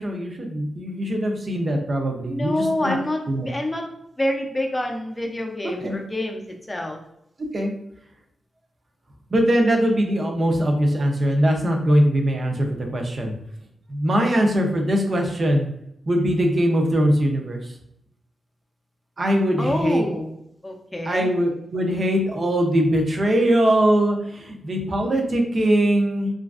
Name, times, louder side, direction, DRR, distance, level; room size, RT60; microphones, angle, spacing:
voice 1, 0.0-3.0 3.3-3.5 5.6-5.9 7.5-7.7 9.3-13.3 13.9-15.7 16.1-17.6 19.2-20.0 21.1-26.3, equal, 40° right, 2 dB, 0.6 m, -21 dB
voice 2, 2.3-3.8 4.2-7.0 19.6-20.3 20.6-21.3, left 1 dB, 15° left, 2 dB, 0.5 m, -27 dB
3.0 x 2.4 x 2.4 m, 0.79 s
cardioid pair, 90°, 0 cm